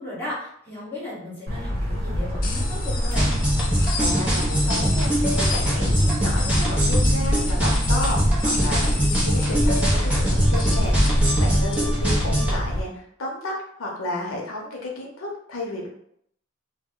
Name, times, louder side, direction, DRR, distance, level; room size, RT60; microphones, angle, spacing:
voice 1, 0.0-3.3, left 1 dB, 10° left, -8 dB, 1.2 m, -35 dB
sound 1, 1.5-12.8, equal, 55° right, 1.3 m, -24 dB
sound 2, 2.4-11.9, left 3 dB, 45° left, 0.5 m, -34 dB
sound 3, 3.2-12.5, right 1 dB, 5° right, 0.6 m, -23 dB
voice 2, 4.0-15.9, left 1 dB, 85° left, -1 dB, 0.6 m, -32 dB
2.2 x 2.1 x 3.5 m, 0.70 s
head